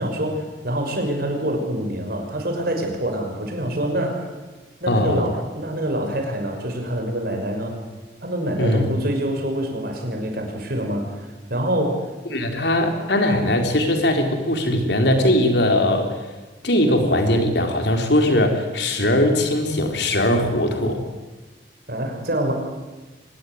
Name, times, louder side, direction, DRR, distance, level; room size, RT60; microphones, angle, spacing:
voice 1, 0.0-4.2 4.8-7.8 8.2-12.1 21.9-22.5, right 1 dB, 55° right, 3 dB, 5.9 m, -26 dB
voice 2, 4.9-5.2 8.6-8.9 12.3-16.3 16.6-21.0, left 1 dB, 70° left, 4 dB, 3.9 m, -20 dB
24.5 x 20.0 x 9.5 m, 1.2 s
head